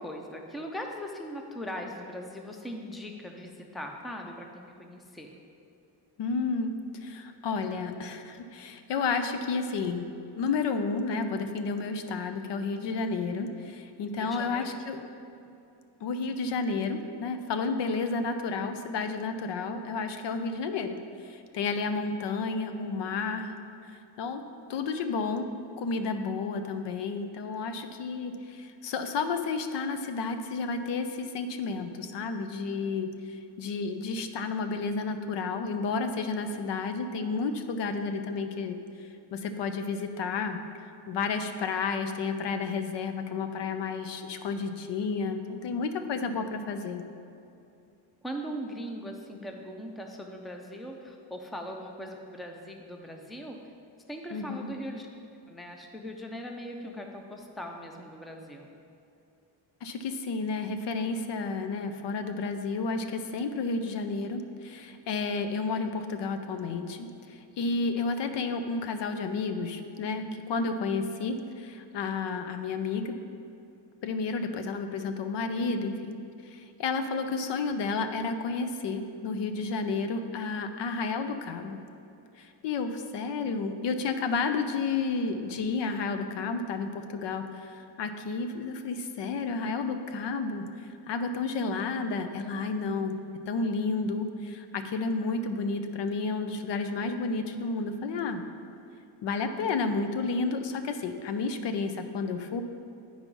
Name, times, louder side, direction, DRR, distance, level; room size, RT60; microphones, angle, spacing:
voice 1, 0.0-5.3 14.2-14.6 48.2-53.6 54.1-55.2 55.5-58.7, equal, ahead, 2 dB, 0.5 m, -40 dB
voice 2, 6.2-6.7 7.0-10.1 10.4-15.1 16.0-23.7 24.2-24.4 24.7-38.8 39.3-40.6 41.1-47.0 54.3-54.7 59.8-73.1 74.0-76.2 76.4-81.8 82.4-90.7 91.1-93.2 93.5-98.4 99.2-102.6, left 4 dB, 70° left, 8 dB, 0.7 m, -31 dB
9.6 x 4.8 x 5.4 m, 2.7 s
cardioid pair, 145°, 45 cm